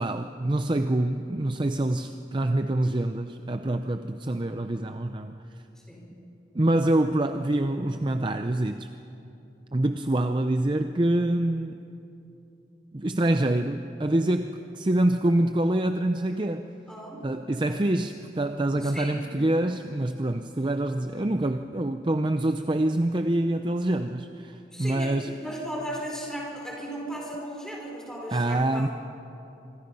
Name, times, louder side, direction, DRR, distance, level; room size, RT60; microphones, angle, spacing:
voice 1, 0.0-5.4 6.5-8.9 9.7-11.8 12.9-16.7 17.2-25.3 28.3-28.9, right 1 dB, 25° right, 7 dB, 0.5 m, -26 dB
voice 2, 16.9-17.2 17.6-17.9 18.8-19.2 24.7-28.8, equal, 5° left, -2 dB, 5.0 m, -36 dB
26.0 x 24.0 x 5.5 m, 2.8 s
head